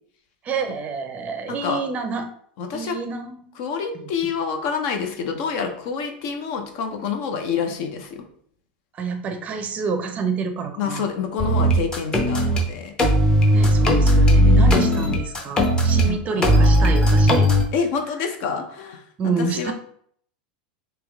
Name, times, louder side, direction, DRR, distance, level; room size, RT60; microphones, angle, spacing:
voice 1, 0.4-2.3 2.7-3.5 3.9-4.1 8.9-11.1 13.5-17.5 19.2-19.7, right 4 dB, 30° right, 6 dB, 0.5 m, -28 dB
voice 2, 1.5-1.8 2.6-3.0 3.6-8.2 10.8-12.9 14.3-15.2 16.0-16.8 17.7-19.0 19.4-19.7, left 6 dB, 55° left, 5 dB, 0.7 m, -27 dB
sound 1, 11.4-12.6 13.0-16.0 16.4-17.6, equal, 15° left, 0.7 m, -17 dB
3.4 x 2.9 x 3.5 m, 0.62 s
supercardioid pair, 130°, 5 cm